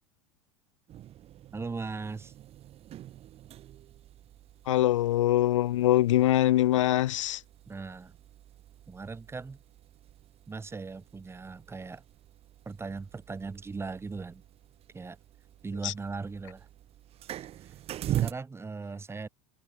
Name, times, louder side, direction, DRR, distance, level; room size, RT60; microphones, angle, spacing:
sound 1, 0.9-18.3, right 12 dB, 40° right, 1.5 m, -42 dB
voice 1, 1.5-2.3 7.7-8.1 8.9-9.6 10.5-12.0 12.6-14.4 14.9-15.2 15.6-16.7 17.6-17.7 18.1-19.3, right 4 dB, 15° right, 3.3 m, -38 dB
voice 2, 4.7-7.4 15.8-15.9, left 14 dB, 85° left, 0.5 m, -23 dB
hypercardioid pair, 95°, 16 cm